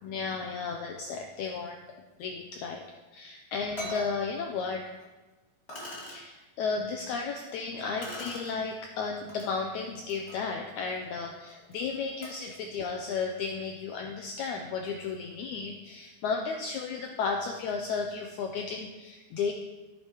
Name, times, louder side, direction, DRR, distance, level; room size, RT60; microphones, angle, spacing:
voice 1, 0.0-1.8 2.2-2.8 3.1-4.9 6.1-19.5, left 5 dB, 80° left, 3 dB, 1.7 m, -34 dB
sound 1, 3.1-3.2 3.8-4.1 5.0-5.1 5.7-6.2 8.0-8.5 9.3-9.5 9.9-12.5, left 1 dB, 25° left, 1.6 m, -42 dB
14.0 x 8.6 x 3.0 m, 1.2 s
omnidirectional pair, 4.1 m